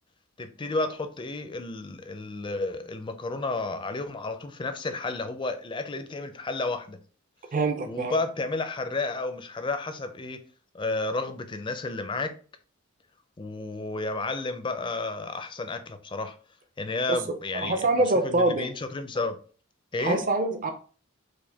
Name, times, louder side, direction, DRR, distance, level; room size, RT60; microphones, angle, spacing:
voice 1, 0.4-7.0 7.8-10.4 10.7-12.3 13.4-16.4 16.8-17.9 18.2-19.4 19.9-20.2, left 3 dB, 25° left, 0.4 m, -31 dB
voice 2, 7.5-8.1 17.1-17.2 17.5-18.7 20.0-20.7, right 2 dB, 40° right, 0.5 m, -25 dB
4.8 x 2.2 x 3.3 m
head